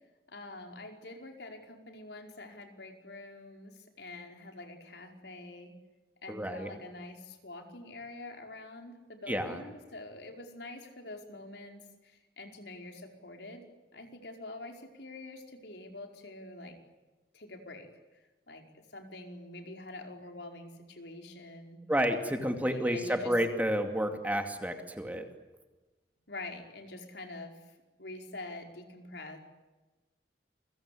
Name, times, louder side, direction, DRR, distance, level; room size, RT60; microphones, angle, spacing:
voice 1, 0.3-5.7 6.2-13.6 13.9-16.8 17.3-21.8 22.2-23.3 26.3-29.4, left 2 dB, 70° left, 3 dB, 5.0 m, -46 dB
voice 2, 6.3-6.7 9.3-9.6 21.9-25.3, equal, 10° right, 5 dB, 2.4 m, -30 dB
29.5 x 23.5 x 8.6 m, 1.2 s
head